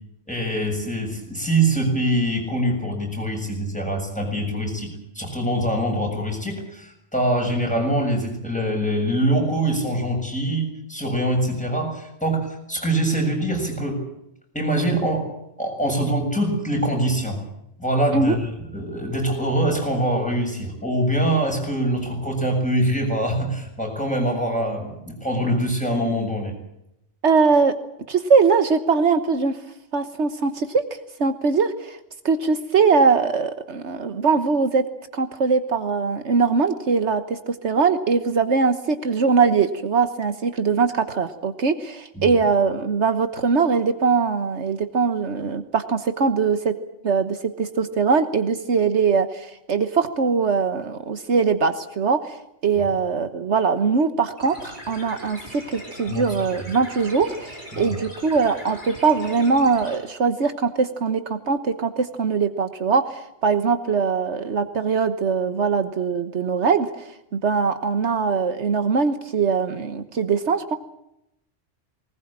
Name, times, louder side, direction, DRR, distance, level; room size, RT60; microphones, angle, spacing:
voice 1, 0.3-14.0 14.5-15.3 15.6-17.4 17.8-26.5 42.2-42.3 52.8-52.9 56.1-56.2 57.7-58.0, right 1 dB, 5° left, 1 dB, 7.2 m, -24 dB
voice 2, 27.2-27.7 28.1-29.6 29.9-30.8 31.2-32.0 32.2-34.8 35.1-46.8 47.0-52.4 52.6-70.8, right 5 dB, 75° right, 10 dB, 1.5 m, -21 dB
sound 1, 54.4-59.9, equal, 45° left, 6.4 m, -40 dB
20.0 x 19.5 x 8.8 m, 0.83 s
omnidirectional pair, 1.2 m